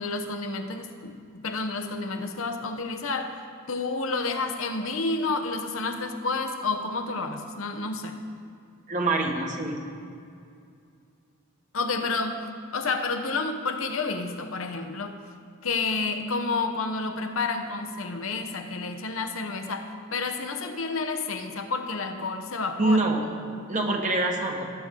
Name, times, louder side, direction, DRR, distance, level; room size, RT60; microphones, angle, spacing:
voice 1, 0.0-3.4 3.7-8.2 11.7-12.5 12.7-15.2 15.6-23.0, left 3 dB, 80° left, 6 dB, 0.9 m, -30 dB
voice 2, 8.9-9.8 22.8-23.2 23.7-24.7, right 2 dB, 35° right, 1 dB, 1.4 m, -25 dB
18.0 x 8.0 x 3.7 m, 2.4 s
head